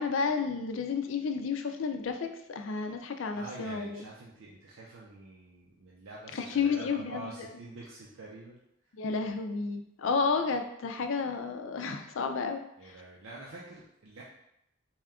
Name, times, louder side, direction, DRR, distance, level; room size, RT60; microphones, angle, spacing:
voice 1, 0.0-4.0 6.3-7.5 9.0-12.6, left 5 dB, 70° left, 6 dB, 0.4 m, -31 dB
voice 2, 3.3-9.0 12.8-14.2, right 2 dB, 80° right, -4 dB, 0.6 m, -47 dB
4.2 x 2.3 x 3.6 m, 0.80 s
head